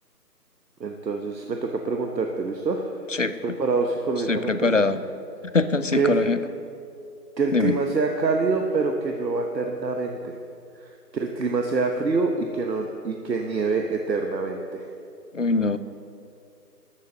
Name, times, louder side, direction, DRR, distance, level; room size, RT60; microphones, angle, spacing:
voice 1, 0.8-2.9 3.4-4.7 5.9-6.2 7.4-10.4 10.8-14.9, right 4 dB, 85° right, 3 dB, 1.2 m, -26 dB
voice 2, 4.3-5.0 5.5-6.4 7.5-7.8 15.3-15.8, left 3 dB, 50° left, 13 dB, 0.5 m, -22 dB
13.0 x 7.5 x 6.7 m, 2.5 s
figure-of-eight pair, 175°, 49 cm